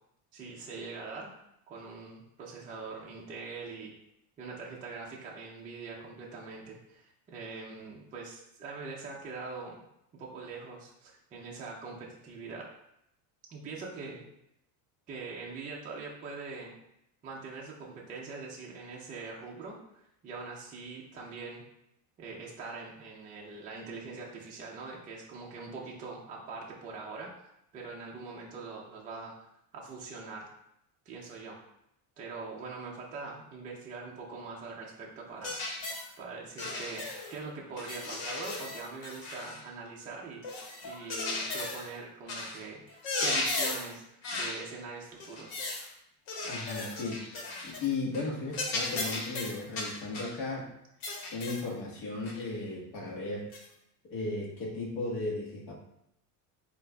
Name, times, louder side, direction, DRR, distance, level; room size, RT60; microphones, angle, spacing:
voice 1, 0.3-1.3 1.7-3.9 4.4-9.8 10.1-12.7 13.5-14.3 15.1-16.8 17.2-21.6 22.2-27.3 27.7-29.3 29.7-30.5 31.1-31.6 32.2-35.6 36.2-44.0 44.3-45.6, right 4 dB, 20° right, -3 dB, 0.4 m, -43 dB
sound 1, 35.4-36.1 36.6-37.4 37.8-39.6 40.4-41.9 42.3-42.6 42.9-43.9 44.2-44.6 45.2-45.9 46.3-47.9 48.1-48.3 48.5-50.4 51.0-51.7 52.3-52.4 53.5-53.7, left 2 dB, 85° left, 1.4 m, -35 dB
voice 2, 46.4-50.7 51.3-53.5 54.0-55.7, left 3 dB, 55° left, -1 dB, 1.4 m, -36 dB
7.6 x 2.6 x 2.2 m, 0.79 s
cardioid pair, 155°, 43 cm